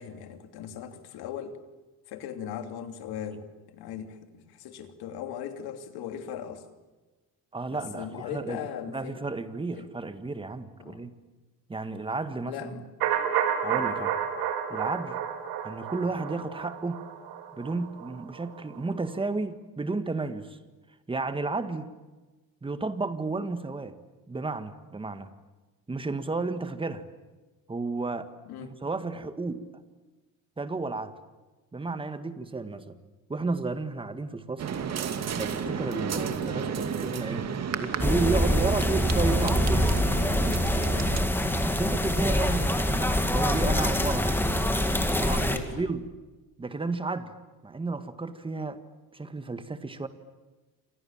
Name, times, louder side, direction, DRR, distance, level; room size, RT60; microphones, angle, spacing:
voice 1, 0.0-1.6 2.1-6.7 7.7-9.2 9.7-9.9 10.8-11.1 12.4-12.9 13.7-13.9 28.5-28.7 45.4-45.9, left 8 dB, 90° left, 7 dB, 3.2 m, -39 dB
voice 2, 7.5-8.6 8.9-11.1 11.7-12.8 13.6-14.1 14.7-15.2 15.6-17.0 17.6-20.6 21.1-21.9 22.6-24.0 24.3-25.3 25.9-27.0 27.7-28.3 28.6-29.7 30.6-31.1 31.7-33.0 33.3-34.6 35.4-37.5 37.8-39.9 41.6-44.4 45.1-46.1 46.6-47.3 47.6-48.8 49.1-50.1, right 3 dB, 15° right, 10 dB, 1.8 m, -32 dB
sound 1, 13.0-18.9 19.2-19.3, right 8 dB, 85° right, 4.7 m, -31 dB
sound 2, 34.6-41.2, right 7 dB, 45° right, 2.4 m, -32 dB
sound 3, 38.0-45.6, left 1 dB, 5° left, 2.5 m, -25 dB
29.5 x 26.5 x 7.4 m, 1.2 s
cardioid pair, 145°, 37 cm